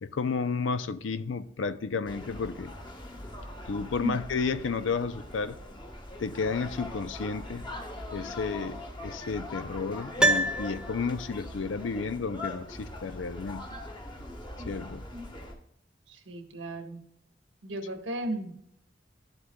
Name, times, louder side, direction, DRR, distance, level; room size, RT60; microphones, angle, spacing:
voice 1, 0.0-2.7 3.7-5.6 6.2-7.6 8.1-13.7 14.7-15.0, left 4 dB, 90° left, 0.5 m, -32 dB
sound 1, 2.1-15.5, left 1 dB, 25° left, 1.3 m, -41 dB
Piano, 10.2-11.5 11.7-11.8, right 1 dB, 5° right, 0.4 m, -26 dB
voice 2, 16.1-17.0 17.6-18.5, right 1 dB, 90° right, 1.4 m, -35 dB
11.5 x 8.0 x 2.3 m
head